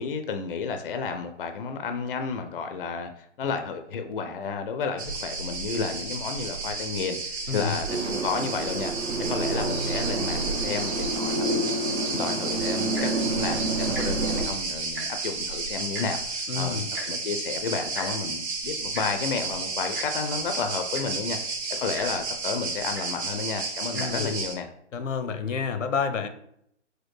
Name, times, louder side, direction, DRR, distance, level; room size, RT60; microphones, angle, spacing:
voice 1, 0.0-8.9 9.2-24.7, left 5 dB, 50° left, 7 dB, 0.5 m, -32 dB
sound 1, 5.0-24.5, right 3 dB, 60° right, 1.3 m, -32 dB
sound 2, 7.9-14.4, right 2 dB, 85° right, 1.2 m, -29 dB
Tick-tock, 12.8-13.2 13.9-14.1 14.4-14.5 14.8-15.3 15.9-16.1 16.9-17.1 17.9-18.1 18.9-19.0 19.9-20.1 20.6-20.7 20.9-21.2 21.9-22.1 22.9-23.1 23.8-24.0 24.8-24.9, right 1 dB, 20° right, 0.4 m, -38 dB
voice 2, 16.5-16.9 23.9-24.3 24.9-26.3, left 6 dB, 90° left, 9 dB, 0.8 m, -29 dB
4.3 x 2.2 x 4.6 m, 0.71 s
hypercardioid pair, 155°, 37 cm